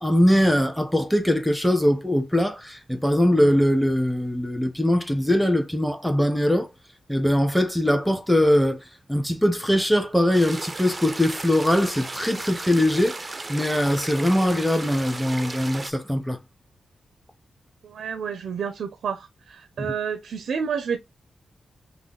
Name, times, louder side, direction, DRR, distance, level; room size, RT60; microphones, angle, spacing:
voice 1, 0.0-6.7 7.1-8.8 9.1-13.2 13.5-16.4 19.8-19.9, left 1 dB, ahead, 0.9 m, -21 dB
sound 1, 10.3-15.9, right 2 dB, 25° right, 0.5 m, -35 dB
voice 2, 17.8-21.0, right 6 dB, 80° right, 0.6 m, -30 dB
5.6 x 2.1 x 3.9 m
wide cardioid pair, 115°, 0 cm